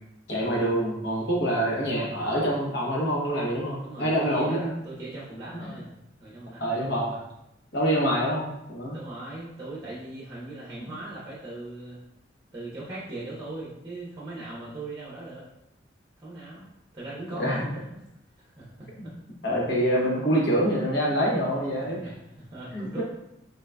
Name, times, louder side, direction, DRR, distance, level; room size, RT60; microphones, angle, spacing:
voice 1, 0.3-4.7 5.6-5.7 6.6-7.2 7.7-9.0 17.4-17.6 19.0-19.1 19.4-22.1 22.7-23.0, equal, 65° left, -3 dB, 1.1 m, -26 dB
voice 2, 3.8-4.6 4.8-5.9 6.2-6.9 8.9-12.0 12.5-15.4 16.2-16.7 16.9-18.0 18.4-19.1 21.9-22.1 22.4-23.0, right 2 dB, 25° right, -7 dB, 0.8 m, -39 dB
4.0 x 3.7 x 2.2 m, 0.84 s
head